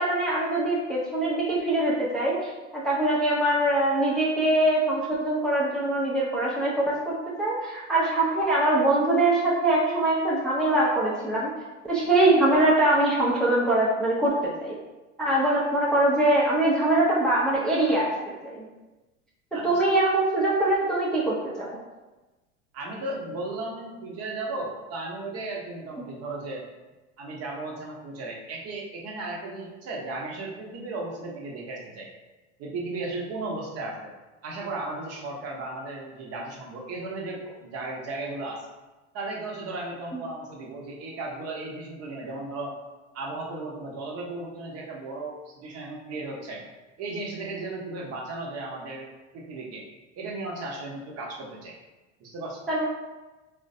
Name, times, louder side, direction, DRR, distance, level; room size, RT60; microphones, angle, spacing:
voice 1, 0.0-11.5 11.9-14.8 15.2-18.7 19.5-21.7 52.7-52.9, right 1 dB, ahead, -6 dB, 0.5 m, -23 dB
voice 2, 22.7-26.6 27.2-32.1 32.6-34.1 34.4-38.6 39.1-42.7 43.1-46.6 47.0-49.8 50.2-51.7 52.2-52.6, right 2 dB, 40° right, -1 dB, 0.8 m, -35 dB
3.1 x 2.1 x 2.5 m, 1.1 s
hypercardioid pair, 80°, 36 cm